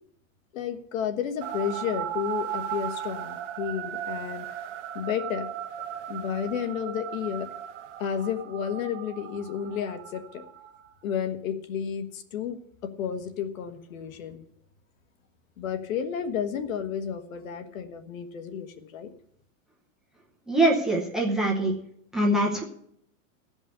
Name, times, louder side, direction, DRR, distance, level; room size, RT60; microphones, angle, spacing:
voice 1, 0.5-4.5 4.9-5.5 5.8-7.5 8.0-10.4 11.0-14.4 15.6-19.1, left 8 dB, 80° left, 8 dB, 1.5 m, -32 dB
sound 1, 1.4-10.9, right 10 dB, 65° right, 0.9 m, -36 dB
voice 2, 20.5-21.7 22.1-22.6, right 1 dB, ahead, -2 dB, 0.8 m, -23 dB
15.5 x 5.4 x 8.2 m, 0.70 s
supercardioid pair, 175°, 40 cm